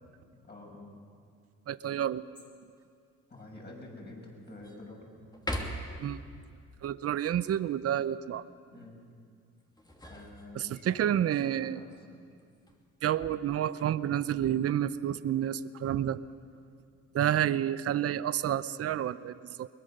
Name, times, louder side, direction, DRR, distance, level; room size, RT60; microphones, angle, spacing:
voice 1, 0.3-0.9 3.3-5.3 8.7-8.9 10.1-12.0, left 2 dB, 35° left, -1 dB, 6.7 m, -48 dB
voice 2, 1.7-2.2 6.0-6.2 6.8-8.4 10.6-11.8 13.0-16.2 17.1-19.7, right 11 dB, 50° right, 15 dB, 0.7 m, -29 dB
sound 1, 2.3-2.8 3.4-3.5 4.0-4.8 5.3-6.1 9.6-11.0 12.3-12.9, equal, 15° left, 2.7 m, -40 dB
22.5 x 20.0 x 6.7 m, 2.2 s
cardioid pair, 90°, 30 cm